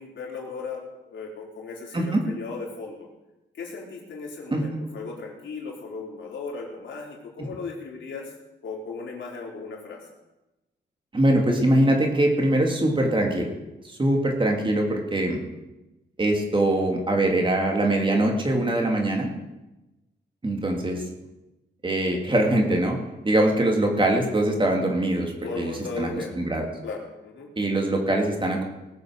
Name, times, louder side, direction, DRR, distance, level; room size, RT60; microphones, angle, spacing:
voice 1, 0.0-3.1 3.5-8.3 8.6-10.0 25.4-26.4 26.8-27.5, left 4 dB, 85° left, -2 dB, 3.7 m, -36 dB
voice 2, 11.1-13.5 14.0-15.4 16.2-19.3 20.4-21.0 21.8-23.0 23.2-26.1 26.3-26.7 27.6-28.6, right 1 dB, 25° right, 1 dB, 2.7 m, -22 dB
19.5 x 7.1 x 6.6 m, 1.0 s
wide cardioid pair, 110°, 19 cm